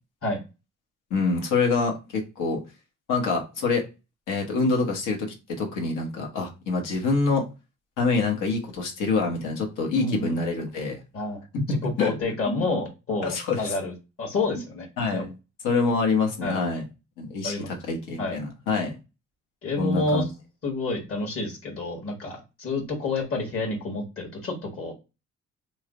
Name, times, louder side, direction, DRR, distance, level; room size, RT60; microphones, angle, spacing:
voice 1, 1.1-2.6 3.1-3.8 4.3-7.4 8.0-11.0 11.5-12.1 12.4-12.7 13.2-13.7 15.0-15.2 15.6-16.8 17.2-18.9 19.8-20.3, left 4 dB, 90° left, 2 dB, 1.1 m, -26 dB
voice 2, 10.0-10.4 11.1-14.9 15.1-15.3 16.4-16.6 17.4-17.7 18.2-18.4 19.6-20.2 20.6-24.9, left 2 dB, 45° left, 0 dB, 1.5 m, -29 dB
3.1 x 2.1 x 3.7 m, 0.28 s
cardioid pair, 90°, 30 cm